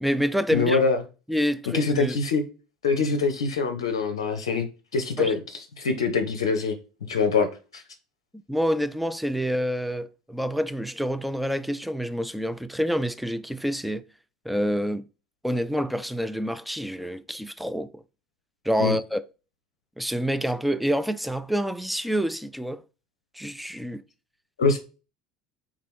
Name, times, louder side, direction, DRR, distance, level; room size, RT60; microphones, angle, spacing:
voice 1, 0.0-0.8 1.3-2.2 5.2-5.3 8.5-14.0 14.5-15.0 15.4-18.0 18.6-19.2 20.0-22.8 23.4-24.0, equal, ahead, 0.4 m, -27 dB
voice 2, 0.5-1.0 1.7-2.4 2.8-4.7 4.9-6.8 7.1-7.5 7.7-7.8 18.8-19.0 24.6-24.8, left 4 dB, 70° left, 0.5 m, -24 dB
3.8 x 3.0 x 4.6 m
figure-of-eight pair, 65°, 3 cm